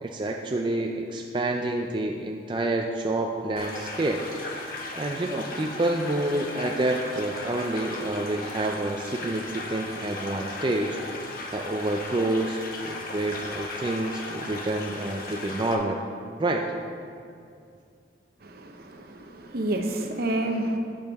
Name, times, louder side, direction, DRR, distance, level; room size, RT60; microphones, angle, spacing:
voice 1, 0.0-4.2 5.0-11.0 11.5-16.0 16.4-16.6, right 2 dB, 25° right, 1 dB, 0.4 m, -28 dB
sound 1, 3.6-15.7, left 2 dB, 50° left, 1.0 m, -37 dB
voice 2, 18.4-20.8, right 1 dB, 55° right, 4 dB, 0.8 m, -29 dB
12.0 x 7.1 x 3.5 m, 2.4 s
head